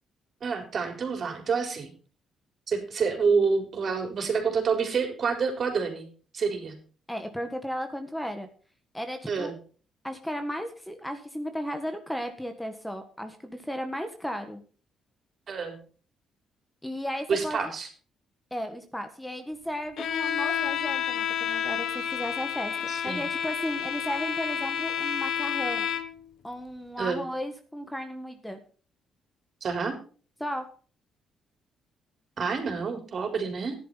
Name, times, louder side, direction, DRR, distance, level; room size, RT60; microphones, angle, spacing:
voice 1, 0.4-1.9 2.7-6.1 6.3-6.7 9.3-9.6 15.5-15.8 17.3-17.9 22.9-23.2 27.0-27.2 29.6-30.0 32.4-33.7, right 5 dB, 50° right, 4 dB, 4.0 m, -28 dB
voice 2, 7.1-8.5 8.9-9.5 10.0-14.6 16.8-17.7 18.5-22.7 23.0-25.9 26.4-28.6 30.4-30.7, equal, 5° left, 7 dB, 1.5 m, -35 dB
Bowed string instrument, 20.0-26.3, left 8 dB, 65° left, 1.3 m, -30 dB
13.5 x 11.0 x 4.0 m, 0.39 s
cardioid pair, 90°, 0 cm